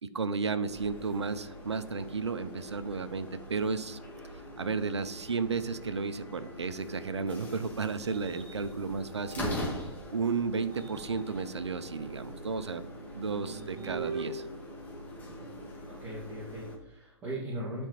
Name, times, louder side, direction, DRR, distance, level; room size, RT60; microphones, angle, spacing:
voice 1, 0.0-4.0 4.6-9.5 10.1-12.8 13.1-14.5, right 5 dB, 80° right, 12 dB, 0.8 m, -33 dB
sound 1, 0.7-16.8, left 1 dB, 10° left, 1.9 m, -42 dB
sound 2, 7.7-10.0 10.5-15.7, right 4 dB, 50° right, 2.2 m, -46 dB
voice 2, 15.4-17.9, right 1 dB, 15° right, -7 dB, 2.3 m, -39 dB
10.0 x 4.5 x 5.1 m, 0.83 s
figure-of-eight pair, 120°, 14 cm